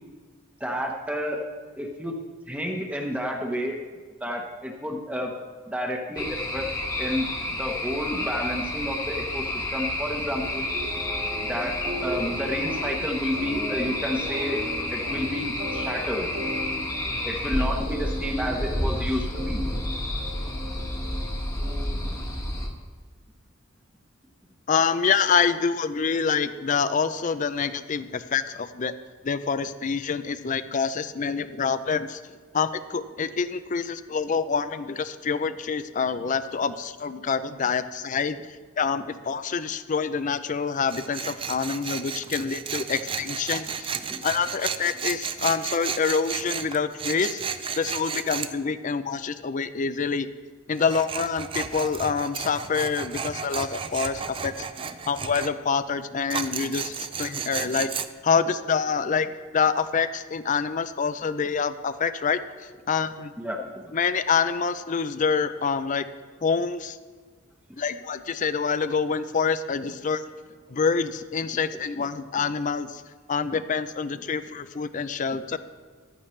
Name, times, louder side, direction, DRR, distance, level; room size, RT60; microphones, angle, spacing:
voice 1, 0.6-1.4 1.8-2.1 2.5-3.8 4.2-5.3 5.7-6.7 7.0-10.6 11.4-14.6 14.9-16.4 17.2-19.6 21.9-22.1 44.1-44.2 63.4-63.6 71.9-72.0, equal, 5° right, 1 dB, 1.1 m, -30 dB
sound 1, 6.2-22.7, left 1 dB, 15° left, 1.3 m, -30 dB
sound 2, 10.4-22.1, equal, 40° right, 2.1 m, -37 dB
voice 2, 24.7-28.9 29.2-32.2 32.5-38.4 38.8-43.9 44.2-47.4 47.8-50.3 50.7-54.7 55.1-57.9 58.2-62.4 62.9-63.3 63.9-66.1 66.4-67.0 67.8-70.2 70.7-73.0 73.3-75.6, left 5 dB, 40° left, 13 dB, 0.5 m, -26 dB
Tools, 40.9-48.5 50.8-55.5 56.3-58.1, right 6 dB, 25° right, 0.4 m, -33 dB
14.5 x 11.5 x 3.2 m, 1.5 s
head